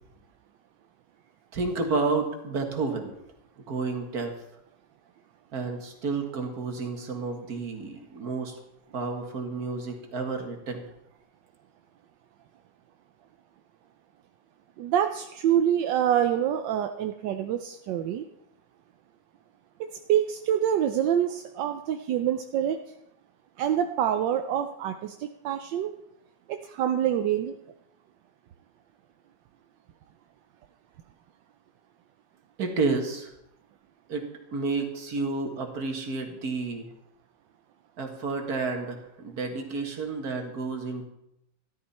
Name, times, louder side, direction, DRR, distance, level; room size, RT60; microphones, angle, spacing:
voice 1, 1.5-3.1 3.7-4.3 5.5-8.5 8.9-10.9 32.6-33.3 34.1-34.2 34.5-36.9 38.0-41.1, right 4 dB, 55° right, 4 dB, 2.1 m, -30 dB
voice 2, 14.8-18.3 19.8-22.8 23.6-25.9 26.5-27.5, right 10 dB, 80° right, 7 dB, 1.3 m, -26 dB
14.0 x 11.5 x 4.3 m, 0.84 s
omnidirectional pair, 2.0 m